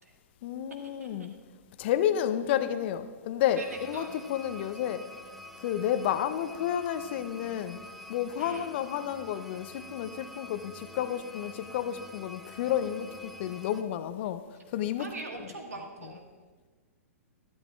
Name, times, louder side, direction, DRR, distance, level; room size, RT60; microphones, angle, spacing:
voice 1, 0.4-1.4 1.8-5.0 5.6-7.8 8.1-15.1 15.4-15.5, left 10 dB, 45° left, 0.5 m, -31 dB
sound 1, 3.6-13.8, left 1 dB, ahead, 0.5 m, -47 dB
voice 2, 3.6-4.1 8.4-8.7 15.0-16.2, right 3 dB, 80° right, 1.6 m, -41 dB
13.0 x 11.5 x 2.4 m
figure-of-eight pair, 115°, 8 cm